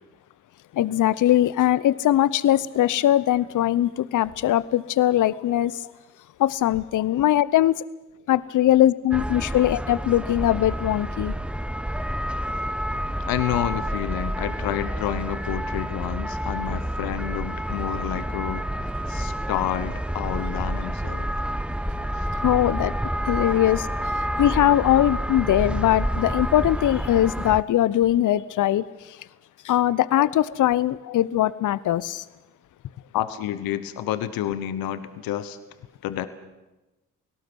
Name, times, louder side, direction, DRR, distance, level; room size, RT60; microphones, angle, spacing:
voice 1, 0.7-5.8 6.4-7.7 8.3-11.3 22.4-22.9 23.3-23.9 24.4-28.8 29.6-32.2, left 12 dB, 60° left, 0.8 m, -21 dB
sound 1, 9.1-27.6, equal, 5° right, 0.9 m, -29 dB
voice 2, 13.3-18.7 19.1-21.3 22.8-22.9 24.9-25.0 28.6-28.7 30.0-30.3 31.0-31.2 33.1-35.6 36.0-36.3, left 11 dB, 75° left, 1.2 m, -29 dB
28.5 x 18.5 x 6.2 m
hypercardioid pair, 45°, 36 cm